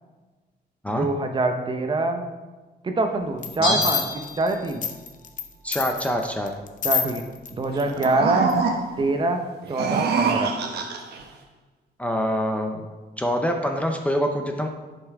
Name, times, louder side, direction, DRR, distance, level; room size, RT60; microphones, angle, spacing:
voice 1, 0.9-2.2 2.8-4.8 6.8-7.2 7.5-8.5 9.0-9.4 9.7-10.5, right 2 dB, 30° right, 5 dB, 0.8 m, -24 dB
sound 1, 3.4-3.6 3.8-5.5 5.7-7.5 7.8-8.1 8.5-8.6, left 7 dB, 50° left, 0.7 m, -27 dB
Bell, 3.6-5.0 5.3-5.4, left 2 dB, 75° left, 3.2 m, -28 dB
voice 2, 5.6-6.5 12.0-12.8 13.2-14.7, equal, 10° left, 3 dB, 0.6 m, -25 dB
sound 2, 7.7-9.1 9.6-11.2, right 5 dB, 80° right, 1.0 m, -25 dB
10.5 x 5.6 x 4.7 m, 1.3 s
wide cardioid pair, 150°, 17 cm